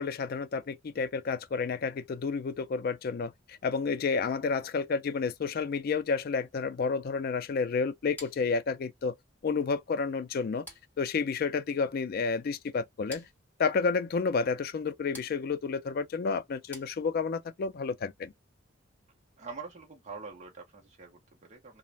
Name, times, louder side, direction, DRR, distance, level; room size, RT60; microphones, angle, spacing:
voice 1, 0.0-9.1 9.4-10.7 11.0-13.3 13.6-18.3, left 5 dB, 50° left, 0.3 m, -30 dB
sound 1, 8.2-17.5, left 2 dB, 10° left, 1.1 m, -53 dB
voice 2, 19.4-21.8, right 4 dB, 35° right, 0.6 m, -45 dB
2.5 x 2.0 x 3.1 m
head